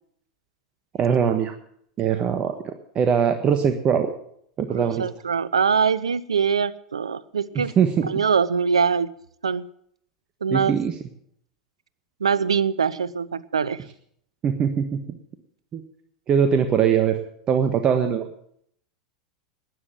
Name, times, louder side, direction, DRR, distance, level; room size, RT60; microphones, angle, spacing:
voice 1, 1.0-1.5 2.0-4.1 4.6-5.0 7.8-8.1 10.5-10.9 14.4-15.0 15.7-15.8 16.3-17.2 17.5-18.2, right 7 dB, 35° right, 7 dB, 1.4 m, -21 dB
voice 2, 4.7-7.7 8.0-9.1 9.4-9.6 10.4-10.7 12.2-13.8, right 6 dB, 85° right, 18 dB, 0.6 m, -23 dB
12.5 x 10.0 x 8.8 m, 0.68 s
hypercardioid pair, 90°, 3 cm